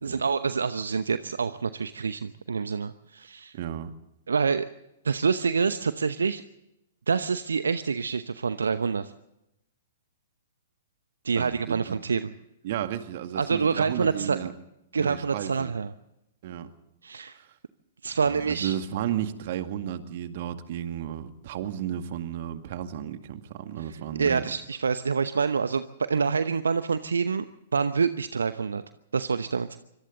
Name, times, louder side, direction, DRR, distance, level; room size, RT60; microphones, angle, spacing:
voice 1, 0.0-3.6 4.3-4.7 5.0-6.4 7.1-9.1 11.2-12.3 13.4-14.4 14.9-15.9 17.0-17.4 18.0-18.8 23.8-27.4 27.7-28.8 29.1-29.8, right 5 dB, 70° right, 12 dB, 0.9 m, -27 dB
voice 2, 3.5-3.9 11.4-12.0 12.6-14.5 15.0-15.7 16.4-16.7 17.4-17.5 18.2-24.5, right 10 dB, 50° right, 8 dB, 2.1 m, -33 dB
26.5 x 25.0 x 4.0 m, 0.89 s
figure-of-eight pair, 110°, 0 cm